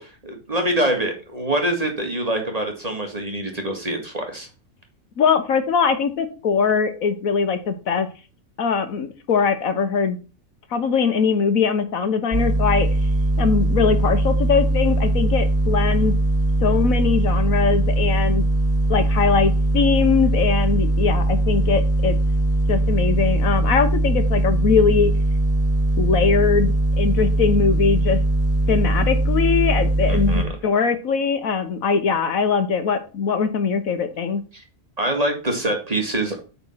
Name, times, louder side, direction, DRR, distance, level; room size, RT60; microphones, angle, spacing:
voice 1, 0.0-4.5 30.1-30.5 34.5-34.6 35.0-36.4, right 1 dB, 30° right, 3 dB, 1.9 m, -25 dB
voice 2, 5.2-8.1 8.6-10.2 10.7-12.9 13.4-16.1 16.6-18.4 18.9-22.2 22.7-25.1 26.0-28.2 28.7-34.4, left 6 dB, 75° left, 8 dB, 1.5 m, -21 dB
sound 1, 12.3-30.4, right 1 dB, 10° right, 2.4 m, -20 dB
8.7 x 4.3 x 5.7 m, 0.33 s
omnidirectional pair, 1.5 m